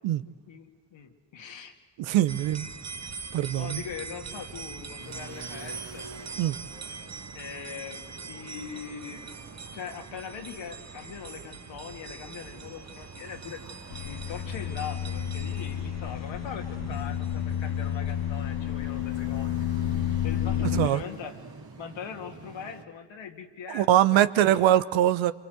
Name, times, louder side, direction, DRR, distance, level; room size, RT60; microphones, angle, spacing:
voice 1, 0.5-1.7 3.6-6.1 7.3-9.3 9.7-19.6 20.2-21.4 21.8-24.7, left 7 dB, 70° left, 4 dB, 2.4 m, -41 dB
voice 2, 2.0-2.7 3.3-3.8 6.4-6.6 20.7-21.0 23.7-25.3, right 12 dB, 80° right, 14 dB, 0.9 m, -22 dB
sound 1, 2.3-18.7, right 5 dB, 35° right, 1.3 m, -42 dB
sound 2, 5.0-22.9, right 4 dB, 50° right, 2.8 m, -49 dB
sound 3, 13.9-20.9, left 10 dB, 50° left, 0.8 m, -30 dB
27.0 x 23.5 x 8.0 m, 1.3 s
hypercardioid pair, 45°, 46 cm